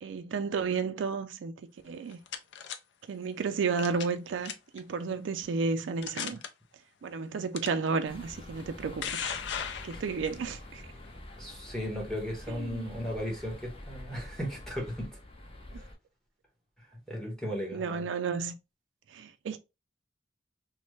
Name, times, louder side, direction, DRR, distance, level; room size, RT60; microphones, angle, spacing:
voice 1, 0.0-2.2 3.1-6.4 7.0-9.3 9.8-10.8 12.5-12.9 15.7-15.8 17.7-18.5 19.1-19.6, right 5 dB, 85° right, 0.4 m, -32 dB
sound 1, 1.9-2.8 3.8-4.2 4.4-4.8 5.4-5.5 6.0-6.5 7.5-7.7 8.6-10.4, left 8 dB, 70° left, 0.4 m, -36 dB
sound 2, 8.0-15.9, left 1 dB, 30° left, 0.7 m, -46 dB
voice 2, 11.4-15.1 17.1-18.1, equal, 5° left, 1.0 m, -36 dB
3.0 x 2.1 x 3.1 m
head